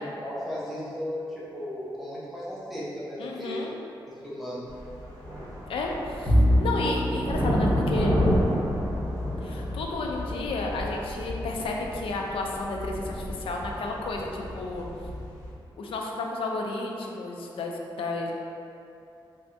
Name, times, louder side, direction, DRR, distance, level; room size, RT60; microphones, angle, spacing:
voice 1, 0.2-3.7 4.1-4.6, equal, ahead, -9 dB, 0.9 m, -35 dB
voice 2, 3.2-3.7 5.7-8.2 9.4-14.9 15.8-18.3, left 3 dB, 85° left, 0 dB, 0.4 m, -32 dB
sound 1, 4.7-15.5, equal, 40° right, 1.3 m, -30 dB
Bowed string instrument, 6.3-12.7, equal, 50° left, 1.1 m, -29 dB
3.4 x 3.3 x 2.7 m, 2.7 s
wide cardioid pair, 120°, 9 cm